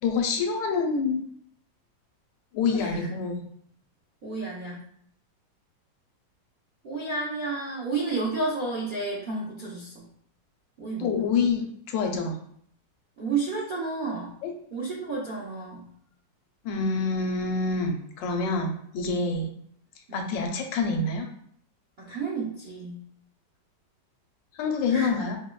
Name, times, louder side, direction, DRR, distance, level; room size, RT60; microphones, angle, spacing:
voice 1, 0.0-1.2 2.5-3.4 11.0-12.4 14.4-14.5 16.6-19.5 20.1-21.3 24.6-25.4, left 4 dB, 80° left, 3 dB, 1.3 m, -27 dB
voice 2, 2.7-3.1 4.2-4.8 6.8-10.0 10.8-11.3 13.2-14.3 14.7-15.9 19.3-19.5 20.1-20.3 22.0-23.0 24.9-25.1, right 3 dB, 80° right, -5 dB, 0.4 m, -31 dB
4.6 x 2.1 x 2.2 m, 0.65 s
omnidirectional pair, 2.0 m